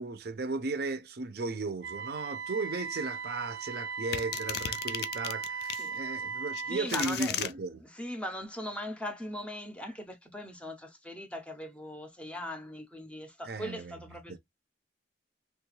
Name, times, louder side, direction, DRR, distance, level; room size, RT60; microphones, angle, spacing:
voice 1, 0.0-7.8 13.5-14.0, right 3 dB, 55° right, 0.5 m, -35 dB
Wind instrument woodwind instrument, 1.8-6.9, right 5 dB, 90° right, 0.9 m, -38 dB
sound 1, 4.1-5.9 6.5-7.5, left 10 dB, 60° left, 0.4 m, -35 dB
voice 2, 6.6-7.5 7.8-14.4, left 1 dB, 5° left, 0.6 m, -40 dB
3.2 x 2.3 x 3.1 m
head